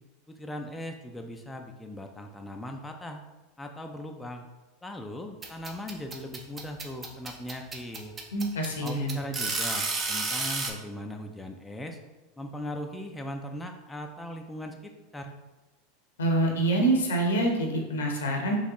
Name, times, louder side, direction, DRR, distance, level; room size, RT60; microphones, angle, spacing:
voice 1, 0.3-3.2 3.6-4.5 4.8-8.1 8.8-12.0 12.4-15.3, left 1 dB, 10° left, 3 dB, 0.4 m, -39 dB
sound 1, 5.4-10.7, right 3 dB, 25° right, 0.7 m, -31 dB
voice 2, 8.3-9.2 16.2-18.6, right 1 dB, 80° left, 1 dB, 0.8 m, -26 dB
4.1 x 3.1 x 3.0 m, 1.1 s
hypercardioid pair, 90°, 0 cm